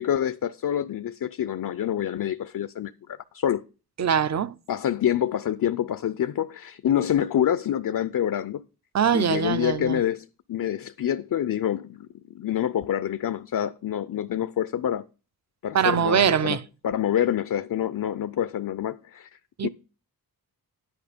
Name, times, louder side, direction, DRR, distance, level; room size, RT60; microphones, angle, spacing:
voice 1, 0.0-3.6 4.7-8.6 9.1-12.1 12.3-15.0 15.6-16.6 16.8-19.3 19.6-19.7, left 10 dB, 60° left, 0.5 m, -27 dB
voice 2, 4.0-4.5 8.9-10.0 15.7-16.6 19.6-19.7, right 8 dB, 45° right, 0.6 m, -22 dB
11.0 x 5.4 x 5.1 m
wide cardioid pair, 105°, 38 cm